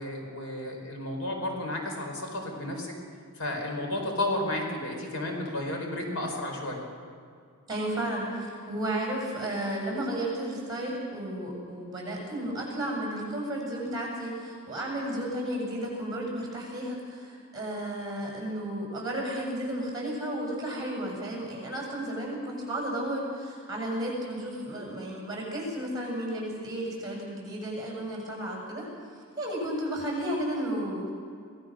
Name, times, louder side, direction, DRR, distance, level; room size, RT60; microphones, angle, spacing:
voice 1, 0.0-3.0 3.4-6.8, left 1 dB, 70° left, 1 dB, 4.7 m, -32 dB
voice 2, 7.7-28.9 29.4-31.1, right 1 dB, 15° right, -2 dB, 7.1 m, -33 dB
25.5 x 18.0 x 6.4 m, 2.3 s
head